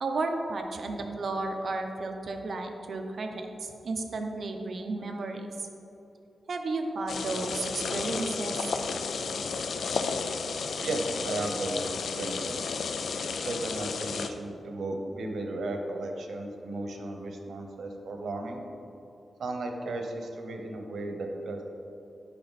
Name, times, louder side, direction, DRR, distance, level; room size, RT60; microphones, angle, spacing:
voice 1, 0.0-5.5 6.5-8.7, right 3 dB, 60° right, 4 dB, 0.8 m, -33 dB
sound 1, 7.1-14.3, left 5 dB, 75° left, 0.5 m, -32 dB
voice 2, 10.8-11.9 12.2-12.6 13.4-18.6 19.4-21.6, right 2 dB, 85° right, 3 dB, 1.0 m, -35 dB
10.5 x 5.9 x 4.2 m, 2.9 s
wide cardioid pair, 105°, 0 cm